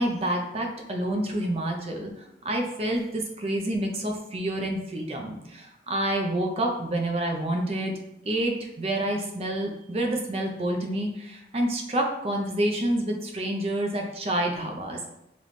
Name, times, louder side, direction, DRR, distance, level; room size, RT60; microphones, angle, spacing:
voice 1, 0.0-2.1 2.4-7.9 8.2-15.1, right 1 dB, 35° right, 2 dB, 0.5 m, -28 dB
3.1 x 3.0 x 4.0 m, 0.85 s
head